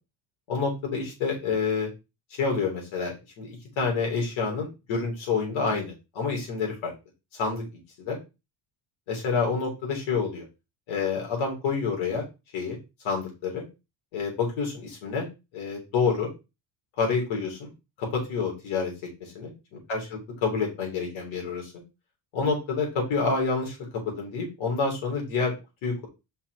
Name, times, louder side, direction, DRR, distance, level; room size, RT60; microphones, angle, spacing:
voice 1, 0.5-1.9 2.3-6.9 7.3-7.6 8.0-8.2 9.1-10.4 10.9-12.2 12.5-12.8 13.0-13.6 14.1-15.3 15.5-16.3 17.0-17.7 18.0-19.5 19.9-20.0 20.4-21.7 22.3-23.8 24.1-25.5 25.8-26.1, left 5 dB, 80° left, 0 dB, 3.7 m, -28 dB
5.7 x 4.7 x 4.8 m, 0.26 s
cardioid pair, 175°, 47 cm